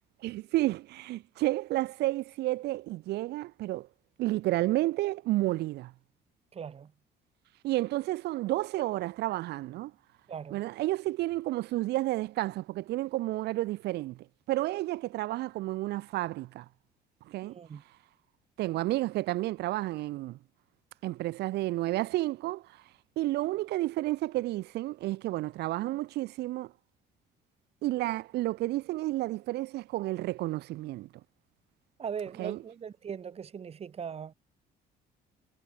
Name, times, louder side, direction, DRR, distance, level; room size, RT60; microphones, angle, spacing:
voice 1, 0.2-3.9 4.2-5.9 7.6-9.9 10.5-16.6 17.3-17.6 18.6-20.4 21.0-22.8 23.2-26.7 27.8-31.1 32.4-32.6, right 17 dB, 80° right, 1.4 m, -31 dB
voice 2, 6.5-6.9 10.3-10.6 17.5-17.8 32.0-34.3, right 7 dB, 35° right, 1.8 m, -39 dB
cardioid pair, 110°, 17 cm